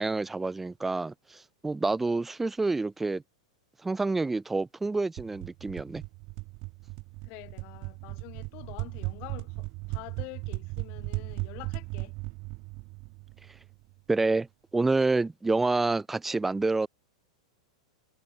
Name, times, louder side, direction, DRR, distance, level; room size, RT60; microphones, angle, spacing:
voice 1, 0.0-3.2 3.8-6.0 14.1-14.5 14.7-16.9, right 3 dB, 5° right, 0.7 m, -28 dB
sound 1, 5.2-13.8, right 26 dB, 35° right, 3.5 m, -37 dB
voice 2, 7.2-12.1, left 31 dB, 35° left, 5.6 m, -46 dB
supercardioid pair, 165°, 3 cm